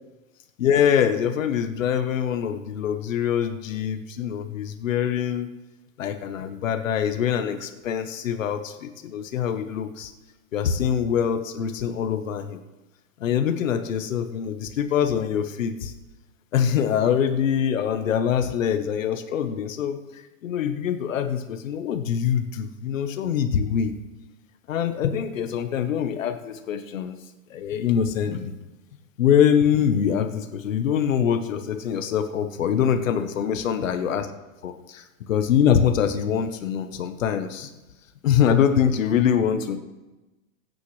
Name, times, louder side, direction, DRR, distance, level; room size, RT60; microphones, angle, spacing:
voice 1, 0.6-5.5 6.0-10.1 10.5-12.6 13.2-15.9 16.5-23.9 24.7-27.1 27.5-28.6 29.2-34.3 34.6-37.7 38.2-39.8, left 8 dB, 65° left, 7 dB, 1.2 m, -24 dB
22.0 x 9.3 x 3.3 m, 1.1 s
supercardioid pair, 175°, 41 cm